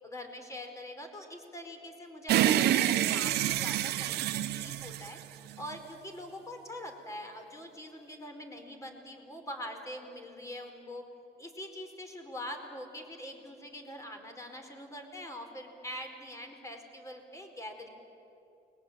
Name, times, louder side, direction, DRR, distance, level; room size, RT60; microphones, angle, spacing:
voice 1, 0.0-5.2 5.6-11.0 11.4-17.9, left 1 dB, 20° left, 5 dB, 4.6 m, -44 dB
sound 1, 2.3-5.8, right 12 dB, 75° right, 1.2 m, -28 dB
29.5 x 22.0 x 8.9 m, 2.9 s
cardioid pair, 110°, 17 cm